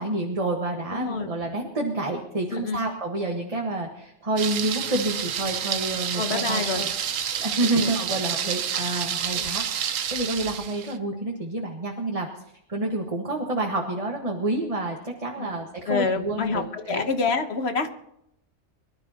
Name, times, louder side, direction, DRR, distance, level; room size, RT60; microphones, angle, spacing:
voice 1, 0.0-6.9 7.4-12.3 12.7-17.0, right 2 dB, 25° right, 0 dB, 1.6 m, -28 dB
voice 2, 0.9-1.3 2.5-2.8 6.1-6.8 7.7-7.9 9.4-9.5 15.4-17.9, left 4 dB, 55° left, 7 dB, 1.4 m, -27 dB
Thunder, 4.4-11.0, right 8 dB, 75° right, 1.2 m, -29 dB
24.0 x 12.5 x 2.9 m, 0.77 s
omnidirectional pair, 1.4 m